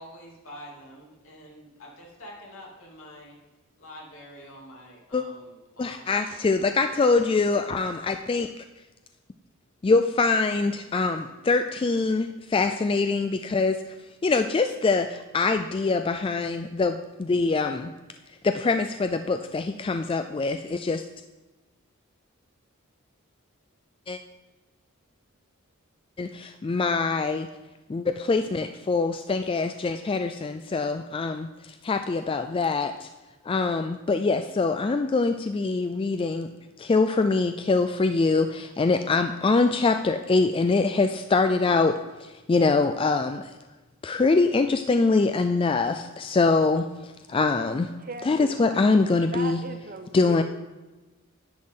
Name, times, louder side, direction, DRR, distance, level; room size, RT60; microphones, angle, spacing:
voice 1, 0.0-3.4 3.8-6.4 6.9-7.4, equal, 80° left, -3 dB, 2.8 m, -46 dB
voice 2, 5.8-8.5 9.8-13.9 14.2-17.9 18.4-21.0 24.1-24.2 26.2-27.5 27.9-33.1 33.4-36.5 36.8-43.5 44.0-47.9 48.2-49.6 50.1-50.4, left 3 dB, 25° left, 8 dB, 0.3 m, -24 dB
voice 3, 48.0-48.6 49.3-50.4, right 3 dB, 40° right, 7 dB, 0.8 m, -38 dB
10.5 x 9.6 x 3.7 m, 1.1 s
head